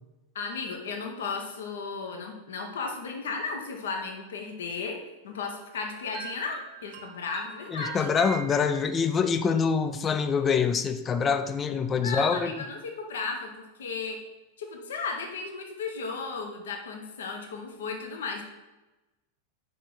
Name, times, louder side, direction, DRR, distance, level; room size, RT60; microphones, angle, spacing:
voice 1, 0.3-5.0 5.2-8.1 11.9-14.2 14.6-18.4, left 4 dB, 60° left, 3 dB, 1.2 m, -35 dB
sound 1, 5.8-9.3, right 8 dB, 40° right, 0.8 m, -43 dB
voice 2, 7.7-12.6, left 6 dB, 20° left, 9 dB, 0.6 m, -25 dB
5.4 x 5.1 x 5.8 m, 1.0 s
figure-of-eight pair, 90°, 0 cm